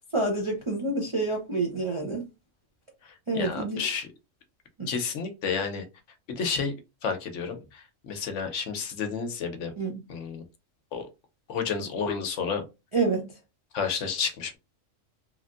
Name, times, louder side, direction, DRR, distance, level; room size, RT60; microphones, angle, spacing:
voice 1, 0.1-2.3 3.3-3.8 4.8-4.9 9.8-10.0 12.9-13.3, right 3 dB, 40° right, 0.4 m, -28 dB
voice 2, 3.3-4.1 4.9-5.9 6.3-6.7 7.0-9.7 10.1-10.4 10.9-11.1 11.5-12.6 13.7-14.6, left 6 dB, 70° left, 1.0 m, -30 dB
3.1 x 2.5 x 2.4 m
omnidirectional pair, 1.4 m